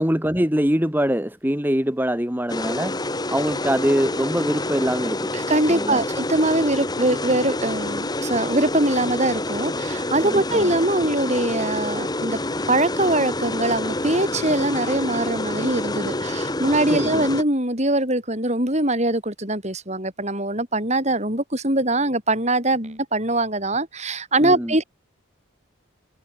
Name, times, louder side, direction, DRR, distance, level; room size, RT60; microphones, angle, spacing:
voice 1, 0.0-3.0 3.3-5.3 5.6-6.0 10.2-10.7 16.9-17.2 24.4-24.8, equal, 10° right, 2.0 m, -23 dB
sound 1, 2.5-17.4, left 2 dB, 20° left, 1.7 m, -27 dB
voice 2, 5.3-12.4 12.7-24.8, right 1 dB, 35° right, 7.8 m, -22 dB
head